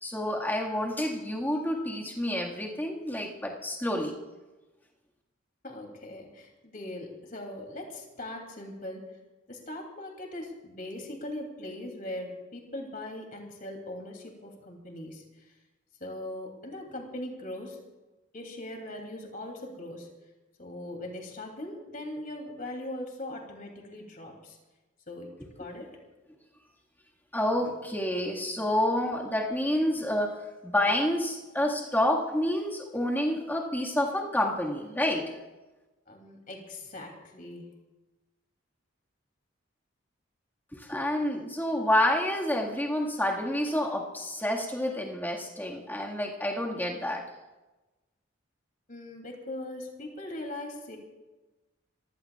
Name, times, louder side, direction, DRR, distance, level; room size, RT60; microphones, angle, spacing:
voice 1, 0.0-4.1 25.6-25.7 27.3-35.4 40.7-47.2, left 1 dB, 10° left, -2 dB, 1.8 m, -29 dB
voice 2, 5.6-9.2 9.5-15.4 16.0-17.8 18.3-20.1 20.6-24.6 25.1-26.0 36.1-37.8 48.9-51.0, left 1 dB, 40° left, 2 dB, 2.9 m, -40 dB
26.0 x 16.0 x 2.4 m, 1.1 s
head